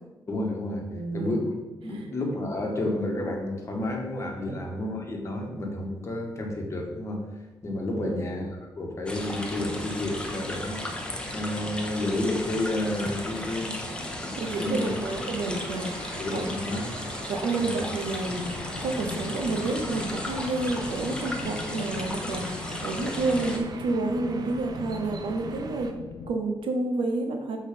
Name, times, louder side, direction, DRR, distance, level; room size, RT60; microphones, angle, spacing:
voice 1, 0.3-0.8 1.1-1.5 1.8-7.2 7.6-8.4 8.8-10.9 11.3-15.0 16.1-17.0 17.6-17.8, left 1 dB, 35° left, 1 dB, 1.4 m, -31 dB
voice 2, 0.9-1.5 1.9-2.1 4.5-4.6 7.9-8.3 14.3-16.5 17.3-18.5 18.8-25.9 26.3-27.6, right 3 dB, 85° right, 4 dB, 1.0 m, -30 dB
sound 1, 9.1-23.6, left 1 dB, 10° left, 1.0 m, -35 dB
sound 2, 14.4-25.9, right 4 dB, 50° right, 0.6 m, -44 dB
sound 3, 18.3-26.3, left 6 dB, 60° left, 0.4 m, -40 dB
6.5 x 3.9 x 5.2 m, 1.2 s
cardioid pair, 95°, 9 cm